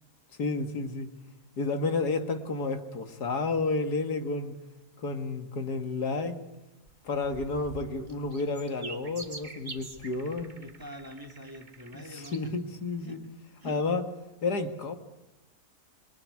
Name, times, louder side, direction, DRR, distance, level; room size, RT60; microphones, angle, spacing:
voice 1, 0.4-1.1 1.6-4.5 5.0-6.4 7.0-10.5 12.1-13.2 13.6-14.0 14.4-15.0, left 3 dB, 80° left, 2.4 m, -31 dB
sound 1, 6.9-12.4 13.0-13.1, right 2 dB, 30° right, 1.9 m, -46 dB
voice 2, 10.5-12.5 13.0-13.2 13.6-13.8, equal, 15° right, 2.5 m, -45 dB
27.0 x 22.5 x 9.7 m
omnidirectional pair, 1.7 m